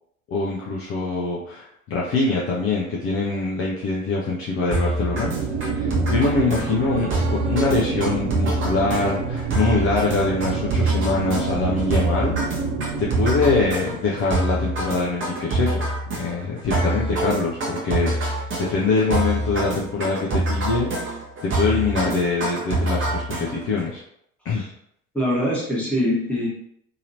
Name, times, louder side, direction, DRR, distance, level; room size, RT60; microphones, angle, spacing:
voice 1, 0.3-5.3 5.7-12.3 13.0-15.8 16.1-24.0 24.4-24.6, left 3 dB, 35° left, -4 dB, 0.6 m, -24 dB
sound 1, 4.7-23.8, right 2 dB, 30° right, 1.0 m, -26 dB
sound 2, 5.2-13.7, right 5 dB, 65° right, 0.5 m, -27 dB
voice 2, 25.1-26.5, equal, 5° left, -6 dB, 1.2 m, -23 dB
2.9 x 2.8 x 2.6 m, 0.71 s
figure-of-eight pair, 65°, 41 cm